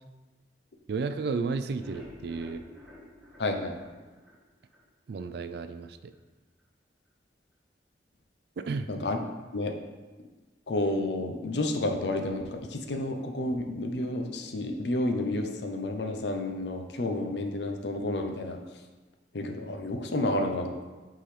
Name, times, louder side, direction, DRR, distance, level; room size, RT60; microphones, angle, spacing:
voice 1, 0.9-2.6 5.1-6.1 8.6-8.9, right 4 dB, 60° right, 10 dB, 0.3 m, -33 dB
sound 1, 1.7-4.8 5.2-5.3 5.7-5.8 6.1-6.2, left 1 dB, ahead, 1.3 m, -50 dB
voice 2, 3.4-3.8 8.9-9.2 9.5-9.7 10.7-18.6 19.3-20.8, left 2 dB, 70° left, 4 dB, 0.6 m, -30 dB
8.3 x 3.8 x 3.3 m, 1.3 s
head